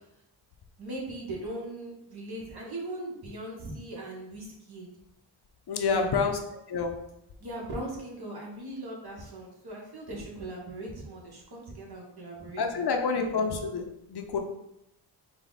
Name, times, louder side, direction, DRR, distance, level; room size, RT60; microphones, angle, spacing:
voice 1, 0.8-4.9 5.9-6.3 7.4-12.9 13.1-13.2, right 1 dB, 60° right, -2 dB, 1.4 m, -39 dB
voice 2, 5.7-6.9 12.6-14.4, left 5 dB, 60° left, 4 dB, 0.7 m, -28 dB
4.6 x 2.3 x 4.0 m, 0.83 s
cardioid pair, 75°, 44 cm